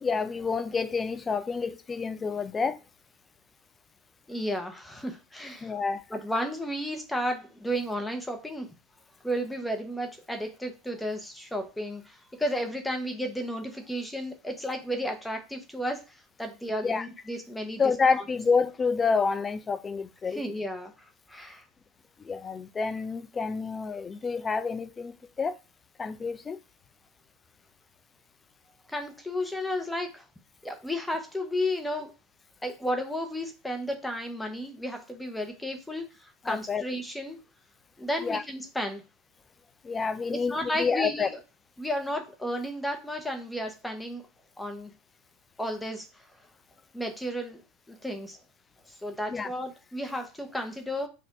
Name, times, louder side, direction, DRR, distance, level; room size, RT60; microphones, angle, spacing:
voice 1, 0.0-2.8 5.6-6.0 16.8-17.1 17.8-20.4 22.2-25.6 26.0-26.6 36.5-36.8 38.2-38.4 39.8-41.3 49.3-49.5, left 5 dB, 25° left, 0.5 m, -28 dB
voice 2, 4.3-5.7 6.1-8.7 9.2-17.8 18.1-18.2 20.2-20.9 21.3-21.6 28.9-30.2 30.6-32.1 32.6-37.4 38.0-39.0 40.3-41.3 41.8-44.2 44.6-44.9 45.6-46.2 46.9-47.6 47.9-48.4 49.0-51.1, equal, 5° left, 0.9 m, -33 dB
4.3 x 2.6 x 4.7 m
hypercardioid pair, 95°, 0 cm